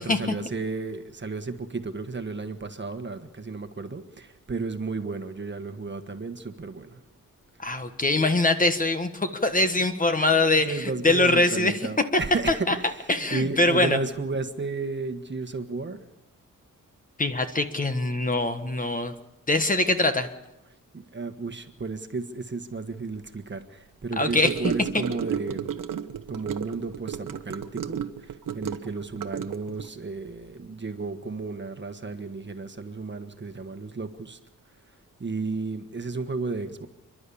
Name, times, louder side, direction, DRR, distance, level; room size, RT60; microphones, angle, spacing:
voice 1, 0.0-7.0 9.8-9.9 10.3-16.0 20.9-25.9 26.3-34.4 35.2-36.9, right 3 dB, 35° right, 8 dB, 1.4 m, -33 dB
voice 2, 7.6-10.7 11.0-11.7 12.7-12.8 13.1-14.0 17.2-19.1 19.5-20.3 24.2-24.5, left 2 dB, 25° left, 8 dB, 1.4 m, -23 dB
Gurgling / Car passing by / Sink (filling or washing), 24.2-29.9, right 8 dB, 75° right, 1.1 m, -33 dB
29.5 x 11.5 x 8.6 m, 0.98 s
wide cardioid pair, 125°, 33 cm